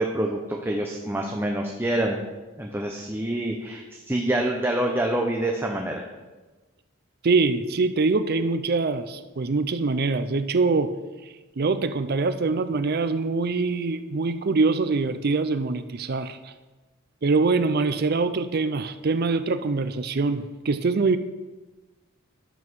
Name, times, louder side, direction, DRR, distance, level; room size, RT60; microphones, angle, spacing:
voice 1, 0.0-2.2 2.6-6.0, right 1 dB, 10° right, 1 dB, 0.8 m, -26 dB
voice 2, 7.2-10.9 11.6-16.5 17.2-21.2, right 3 dB, 45° right, 11 dB, 0.5 m, -24 dB
11.0 x 7.1 x 6.2 m, 1.2 s
head